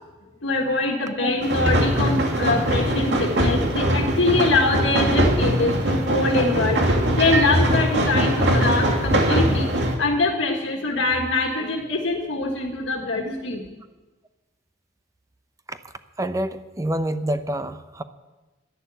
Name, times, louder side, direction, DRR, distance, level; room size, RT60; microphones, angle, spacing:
voice 1, 0.4-6.8 7.1-9.7 10.0-13.6, left 2 dB, 85° left, 1 dB, 1.6 m, -23 dB
sound 1, 1.4-9.9, right 1 dB, 65° right, 2.4 m, -21 dB
voice 2, 16.2-18.0, right 1 dB, 15° right, 10 dB, 0.7 m, -27 dB
12.0 x 11.0 x 8.1 m, 1.1 s
head